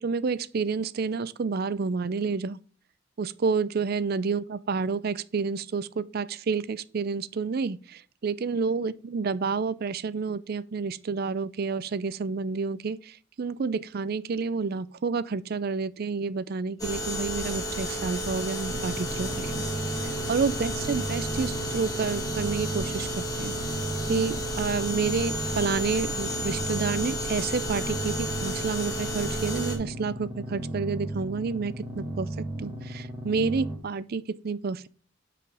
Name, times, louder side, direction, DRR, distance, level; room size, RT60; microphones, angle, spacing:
voice 1, 0.0-2.6 3.2-19.6 20.3-23.5 24.1-32.3 32.6-34.9, right 5 dB, 50° right, 0.4 m, -29 dB
sound 1, 16.8-29.8, equal, 20° left, 1.6 m, -32 dB
sound 2, 18.7-33.8, right 1 dB, 15° right, 1.7 m, -35 dB
8.5 x 5.0 x 3.5 m
head